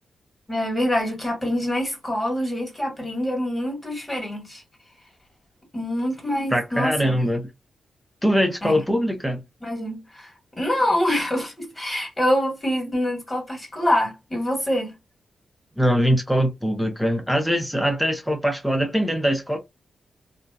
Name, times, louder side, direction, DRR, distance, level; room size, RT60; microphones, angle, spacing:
voice 1, 0.5-4.6 5.7-7.2 8.6-8.8 9.6-15.0, left 1 dB, 20° left, 1.6 m, -25 dB
voice 2, 6.5-7.4 8.2-9.4 15.8-19.6, equal, ahead, 0.7 m, -22 dB
2.6 x 2.1 x 2.3 m
cardioid pair, 75°, 0 cm